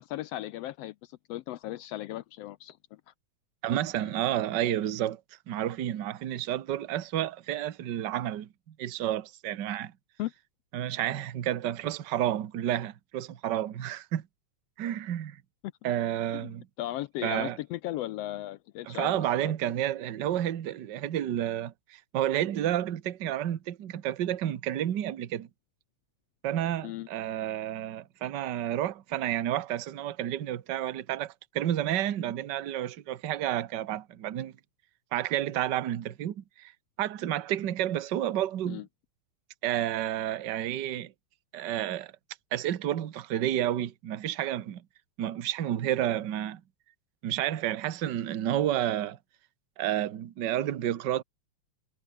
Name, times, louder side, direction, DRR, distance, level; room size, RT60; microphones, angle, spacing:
voice 1, 0.0-3.1 10.2-10.3 16.4-16.5 16.8-19.2 19.4-19.7 26.8-27.1 38.7-38.8, left 15 dB, 80° left, 1.5 m, -37 dB
voice 2, 3.6-5.2 5.5-8.5 8.8-9.9 10.7-14.2 14.8-15.4 15.8-16.6 17.2-17.6 18.9-25.5 26.4-34.5 35.1-36.7 37.0-38.8 39.6-41.1 41.5-42.1 42.5-44.8 45.2-46.6 47.2-49.2 49.8-51.2, right 12 dB, 55° right, 1.3 m, -30 dB
omnidirectional pair, 3.3 m